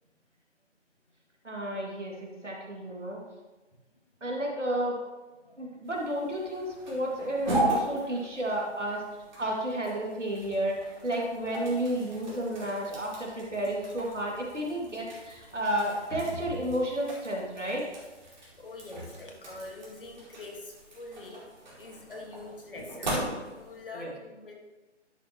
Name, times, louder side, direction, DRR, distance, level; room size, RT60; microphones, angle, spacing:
voice 1, 1.4-3.2 4.2-4.9 5.6-9.0 9.4-17.8 23.9-24.1, right 1 dB, 80° right, -1 dB, 2.4 m, -32 dB
sound 1, 5.8-23.9, right 1 dB, 40° right, 2.7 m, -38 dB
voice 2, 18.6-21.4 21.8-23.1 23.5-24.5, left 2 dB, 45° left, 0 dB, 1.8 m, -44 dB
11.0 x 6.7 x 3.0 m, 1.2 s
figure-of-eight pair, 150°, 36 cm